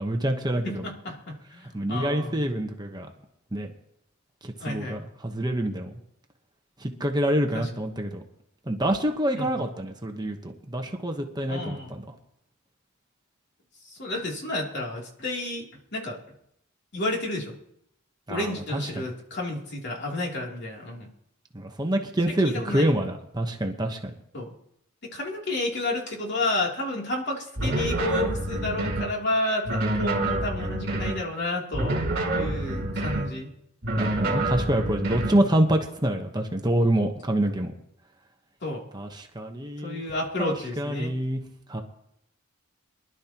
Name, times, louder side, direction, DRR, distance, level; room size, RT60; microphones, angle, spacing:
voice 1, 0.0-0.9 1.7-3.1 3.5-3.7 4.4-5.9 6.8-8.2 8.7-12.0 18.3-19.0 21.5-24.1 34.0-37.7 38.9-40.0 40.4-41.4 41.7-41.8, right 1 dB, 20° right, 3 dB, 1.1 m, -26 dB
voice 2, 0.6-2.4 4.6-5.0 7.5-7.7 9.3-9.5 11.5-11.9 13.9-16.2 16.9-17.6 18.3-21.1 22.4-22.9 24.3-24.5 25.0-32.1 32.3-33.5 38.6-38.8 39.8-41.2, left 2 dB, 55° left, -1 dB, 3.1 m, -31 dB
sound 1, 27.6-29.1 29.6-31.2 31.7-33.3 33.8-35.4, right 1 dB, 55° right, 3.4 m, -27 dB
24.0 x 11.5 x 3.0 m, 0.76 s
head